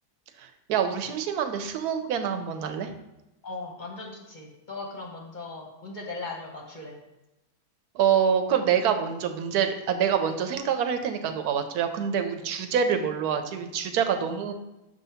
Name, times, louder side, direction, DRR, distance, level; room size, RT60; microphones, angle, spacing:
voice 1, 0.4-2.9 7.9-14.5, right 8 dB, 80° right, 7 dB, 1.1 m, -26 dB
voice 2, 3.4-7.0, left 3 dB, 40° left, 0 dB, 0.8 m, -38 dB
6.6 x 2.8 x 5.6 m, 0.95 s
omnidirectional pair, 1.6 m